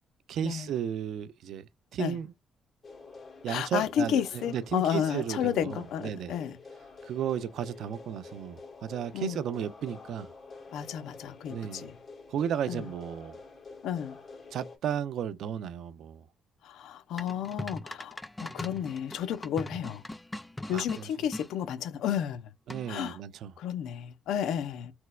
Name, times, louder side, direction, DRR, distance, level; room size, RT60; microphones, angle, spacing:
voice 1, 0.3-2.3 3.4-6.3 7.0-10.3 11.5-11.9 12.3-13.4 14.5-16.2 20.7-21.1 22.7-23.5, right 9 dB, 75° right, 0.4 m, -34 dB
sound 1, 2.8-14.8, left 4 dB, 45° left, 1.5 m, -48 dB
voice 2, 3.5-6.6 9.1-9.4 10.7-12.0 12.7-12.8 13.8-14.2 16.6-20.0 20.7-22.5 22.9-23.2 23.6-24.9, left 9 dB, 85° left, 0.5 m, -32 dB
sound 2, 17.2-21.5 22.7-23.1, left 1 dB, 10° left, 0.3 m, -40 dB
4.4 x 2.1 x 2.2 m
cardioid pair, 90°, 0 cm